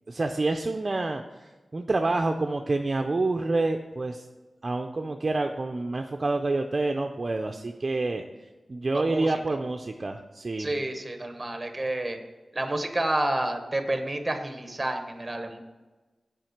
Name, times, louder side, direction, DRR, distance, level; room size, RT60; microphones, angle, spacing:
voice 1, 0.1-1.2 1.7-4.2 4.6-8.2 8.7-10.7, right 2 dB, 40° right, 4 dB, 0.4 m, -27 dB
voice 2, 8.9-9.3 10.6-12.2 12.5-15.6, right 1 dB, 20° right, 6 dB, 0.9 m, -29 dB
7.4 x 5.0 x 6.5 m, 1.2 s
wide cardioid pair, 115°, 0 cm